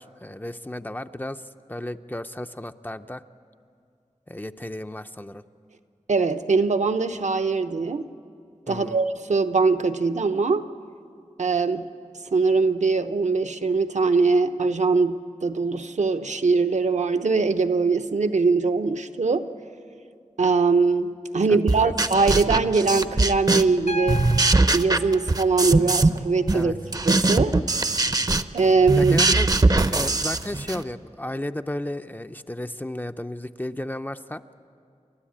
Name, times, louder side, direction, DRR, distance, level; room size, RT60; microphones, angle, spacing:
voice 1, 0.0-1.4 1.7-3.2 4.3-5.4 8.7-9.0 21.5-22.0 26.5-26.8 29.0-29.5 29.8-34.4, left 1 dB, 15° left, 9 dB, 0.5 m, -33 dB
voice 2, 6.1-8.1 8.7-10.6 11.4-11.9 12.3-19.5 20.4-21.1 21.3-24.2 24.7-26.7 27.1-27.6 28.5-29.2, right 4 dB, 70° right, 9 dB, 0.8 m, -22 dB
sound 1, 21.7-23.8 24.1-26.2 26.5-30.8, right 2 dB, 30° right, 0.6 m, -21 dB
Piano, 23.9-27.9 29.4-29.5, equal, 60° left, 0.7 m, -38 dB
29.0 x 12.5 x 8.6 m, 2.4 s
wide cardioid pair, 80°, 12 cm